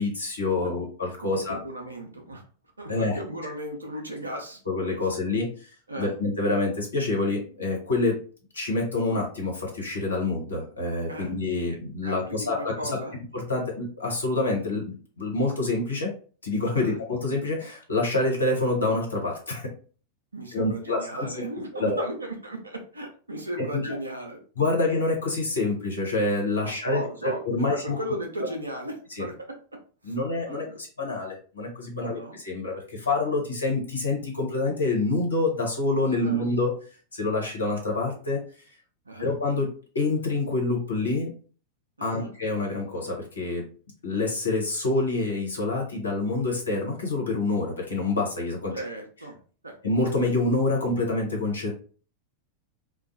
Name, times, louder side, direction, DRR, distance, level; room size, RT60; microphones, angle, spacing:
voice 1, 0.0-1.6 2.9-3.5 4.7-8.1 8.5-12.9 13.3-16.1 16.4-19.7 20.5-21.5 21.7-22.1 23.7-23.8 24.6-28.0 28.4-28.5 29.2-29.3 30.0-36.7 37.1-38.4 39.2-39.7 39.9-41.3 42.0-43.6 44.0-48.7 49.8-51.7, left 2 dB, 70° left, -1 dB, 0.9 m, -27 dB
voice 2, 1.3-2.4 2.8-4.6 5.9-6.2 11.1-11.4 12.0-13.2 16.8-17.0 20.3-24.4 26.6-29.5 30.0-30.1 30.5-30.8 32.0-32.4 36.2-36.5 39.1-39.4 42.0-42.3 48.7-49.4 49.6-49.7, right 1 dB, 80° right, 2 dB, 0.5 m, -36 dB
2.4 x 2.1 x 2.6 m, 0.40 s
figure-of-eight pair, 90°, 0 cm